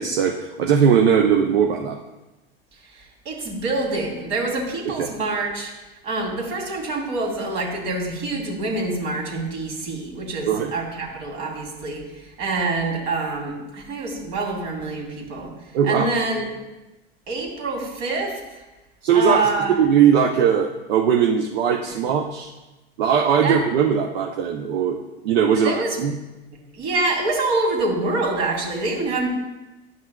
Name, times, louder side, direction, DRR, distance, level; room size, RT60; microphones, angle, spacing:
voice 1, 0.0-2.0 5.0-5.1 10.5-10.7 15.7-16.1 19.0-19.5 19.8-22.5 23.0-26.1, right 7 dB, 85° right, 2 dB, 0.6 m, -19 dB
voice 2, 2.8-5.7 6.0-15.5 15.8-16.5 17.3-18.4 19.1-19.8 23.4-23.6 25.6-26.0 26.7-29.3, right 3 dB, 65° right, -1 dB, 2.3 m, -26 dB
11.0 x 5.7 x 2.2 m, 1.1 s
hypercardioid pair, 85°, 30 cm